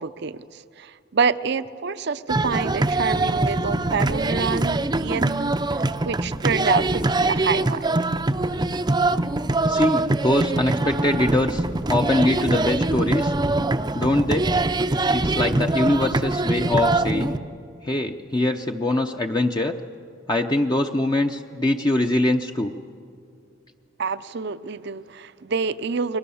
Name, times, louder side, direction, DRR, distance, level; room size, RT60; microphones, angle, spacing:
voice 1, 0.0-5.5 6.0-7.9 24.0-26.2, right 5 dB, 60° right, 14 dB, 0.7 m, -27 dB
sound 1, 2.3-17.4, right 2 dB, 20° right, 0.6 m, -23 dB
voice 2, 9.7-11.6 11.9-13.3 13.9-14.5 15.1-17.4 17.8-19.8 20.3-22.8, left 1 dB, 25° left, 3 dB, 0.7 m, -23 dB
30.0 x 22.5 x 7.1 m, 2.3 s
head